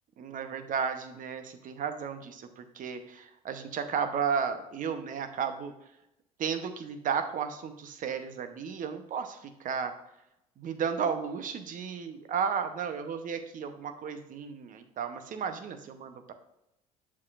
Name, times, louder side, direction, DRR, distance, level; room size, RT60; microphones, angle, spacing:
voice 1, 0.2-5.7 6.4-9.9 10.6-16.3, right 6 dB, 50° right, 9 dB, 0.9 m, -33 dB
7.4 x 6.0 x 2.5 m, 0.86 s
hypercardioid pair, 60°, 18 cm